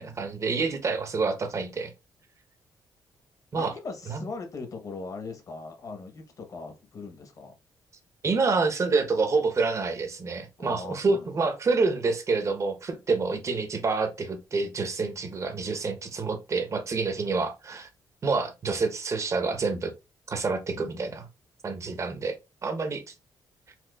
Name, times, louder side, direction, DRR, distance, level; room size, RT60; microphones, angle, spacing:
voice 1, 0.0-1.9 3.5-3.7 4.1-4.3 8.2-17.9 18.2-19.9 20.3-21.3 21.6-22.4 22.6-23.1, right 4 dB, 40° right, 0.8 m, -27 dB
voice 2, 3.6-7.5 10.6-11.3 15.0-15.4 20.7-21.2, left 4 dB, 50° left, 0.9 m, -40 dB
4.2 x 2.3 x 2.3 m
cardioid pair, 85°, 8 cm